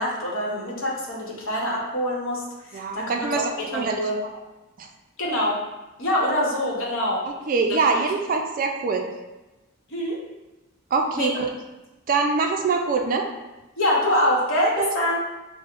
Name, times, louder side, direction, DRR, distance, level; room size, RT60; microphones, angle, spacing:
voice 1, 0.0-4.2 5.2-5.6 6.0-7.2 7.7-8.0 9.9-10.2 11.1-11.4 13.8-15.2, left 1 dB, 70° left, -3 dB, 0.9 m, -25 dB
voice 2, 2.7-4.3 4.8-4.9 7.2-9.1 10.9-11.5 12.1-13.3 14.8-14.9, right 4 dB, 40° right, 3 dB, 0.3 m, -24 dB
6.0 x 2.0 x 2.4 m, 1.1 s
head